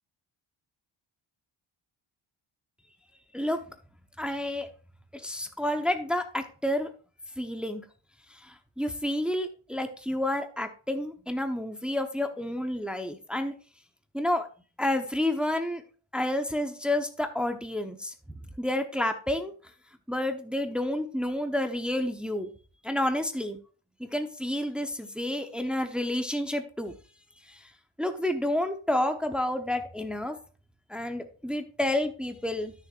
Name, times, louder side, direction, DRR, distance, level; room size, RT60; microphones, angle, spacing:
voice 1, 4.2-4.7 5.1-6.9 7.4-7.8 8.4-13.5 14.1-14.5 14.8-15.8 16.1-18.1 18.6-19.5 20.1-22.5 22.8-23.6 24.0-26.9 27.5-27.6 28.0-30.4 30.9-32.7, left 1 dB, ahead, 6 dB, 1.0 m, -30 dB
12.5 x 6.9 x 2.5 m, 0.37 s
cardioid pair, 80°, 50 cm